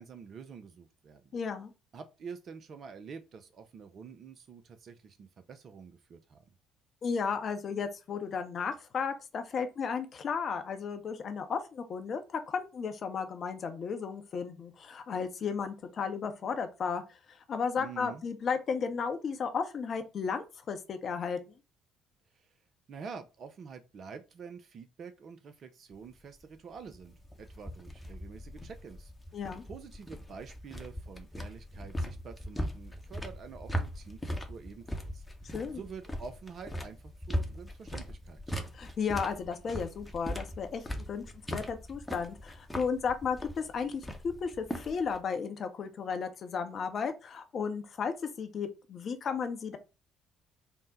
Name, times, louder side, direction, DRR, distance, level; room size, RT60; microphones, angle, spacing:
voice 1, 0.0-1.4 1.9-6.4 17.8-18.2 22.3-22.5 22.9-29.1 29.7-35.2 35.7-38.4, right 5 dB, 45° right, 0.4 m, -47 dB
voice 2, 1.3-1.7 7.0-17.0 17.3-21.5 29.3-29.6 35.4-35.8 38.7-41.2 41.5-49.8, left 6 dB, 45° left, 0.6 m, -34 dB
sound 1, 25.9-45.2, equal, 10° left, 0.8 m, -40 dB
3.5 x 2.0 x 4.0 m
figure-of-eight pair, 50°, 0 cm